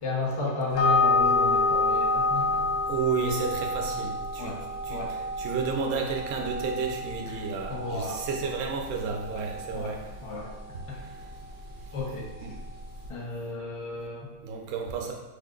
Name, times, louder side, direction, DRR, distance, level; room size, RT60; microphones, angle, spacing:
voice 1, 0.0-2.6 4.4-4.6 4.9-5.1 7.7-8.2 9.3-9.4 9.7-10.0 10.2-10.5 10.9-11.0 11.9-12.3 13.1-14.3, left 3 dB, 55° left, -2 dB, 0.3 m, -33 dB
sound 1, 0.7-13.1, left 3 dB, 85° left, 1.1 m, -29 dB
voice 2, 2.6-10.2 10.9-11.2 12.4-12.5 14.4-15.1, right 5 dB, 70° right, 2 dB, 0.9 m, -32 dB
3.4 x 2.2 x 3.7 m, 1.2 s
omnidirectional pair, 1.5 m